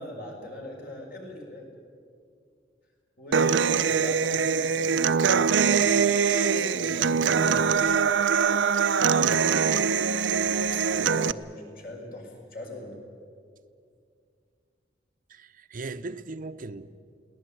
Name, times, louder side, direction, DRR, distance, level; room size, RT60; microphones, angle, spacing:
voice 1, 0.0-1.8 3.2-8.1 8.9-9.4 10.7-13.0, left 1 dB, 55° left, 5.9 m, -41 dB
Human voice / Acoustic guitar, 3.3-11.3, right 6 dB, 85° right, 0.6 m, -23 dB
voice 2, 15.3-16.9, right 3 dB, 50° right, 0.7 m, -38 dB
23.0 x 18.0 x 9.1 m
head